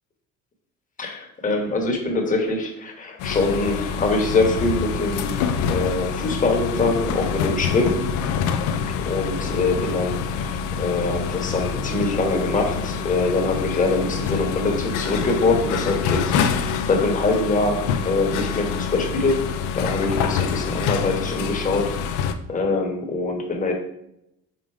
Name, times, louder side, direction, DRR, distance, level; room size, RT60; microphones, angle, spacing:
voice 1, 1.0-8.0 9.0-19.4 19.7-23.7, left 3 dB, 25° left, 2 dB, 1.3 m, -24 dB
sound 1, 3.2-22.3, left 6 dB, 75° left, 0.6 m, -26 dB
5.2 x 3.8 x 4.7 m, 0.79 s
cardioid pair, 120°, 30 cm